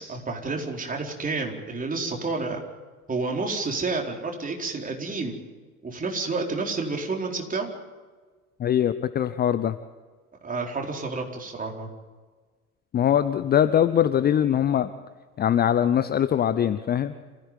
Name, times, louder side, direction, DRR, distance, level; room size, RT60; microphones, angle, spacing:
voice 1, 0.0-2.6 3.1-5.4 5.8-7.7 10.4-11.9, right 3 dB, 20° right, 1 dB, 4.5 m, -30 dB
voice 2, 8.6-9.8 12.9-14.9 15.4-17.1, left 9 dB, 20° left, 12 dB, 0.8 m, -22 dB
27.0 x 16.0 x 9.3 m, 1.4 s
figure-of-eight pair, 75°, 45 cm